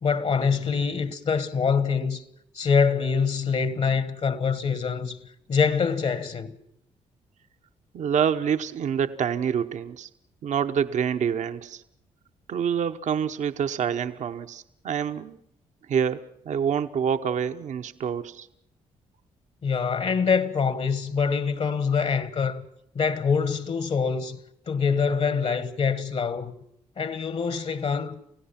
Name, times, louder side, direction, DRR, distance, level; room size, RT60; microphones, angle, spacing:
voice 1, 0.0-2.2 2.5-5.2 5.5-6.5 19.6-22.6 22.9-24.4 24.7-26.5 27.0-28.2, left 5 dB, 55° left, 1.6 m, -25 dB
voice 2, 7.9-10.1 10.4-11.8 12.5-15.4 15.9-18.5, right 8 dB, 65° right, 1.0 m, -27 dB
29.0 x 16.0 x 5.9 m
supercardioid pair, 60°, 13 cm